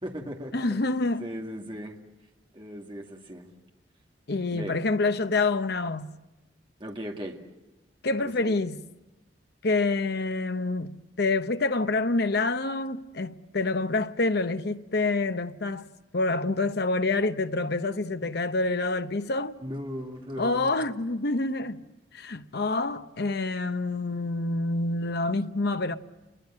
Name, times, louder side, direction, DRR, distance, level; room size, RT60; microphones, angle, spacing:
voice 1, 0.0-2.0 2.5-3.5 4.5-4.8 6.8-7.4 8.2-8.6 19.6-20.7, equal, 25° right, 2.4 m, -38 dB
voice 2, 0.5-1.3 4.3-6.1 8.0-8.8 9.6-15.9 16.1-19.5 20.4-21.8 22.1-25.9, left 3 dB, 60° left, 0.9 m, -27 dB
30.0 x 22.5 x 7.6 m
head